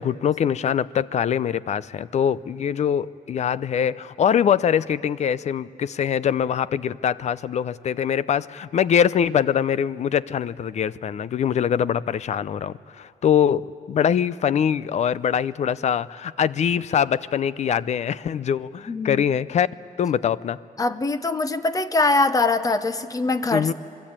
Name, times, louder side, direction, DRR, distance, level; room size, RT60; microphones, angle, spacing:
voice 1, 0.0-19.7 20.0-20.6 23.5-23.7, left 8 dB, 45° left, 18 dB, 0.5 m, -23 dB
voice 2, 18.9-19.2 20.8-23.7, left 3 dB, 20° left, 11 dB, 0.9 m, -22 dB
27.0 x 21.0 x 8.8 m, 2.4 s
cardioid pair, 130°, 16 cm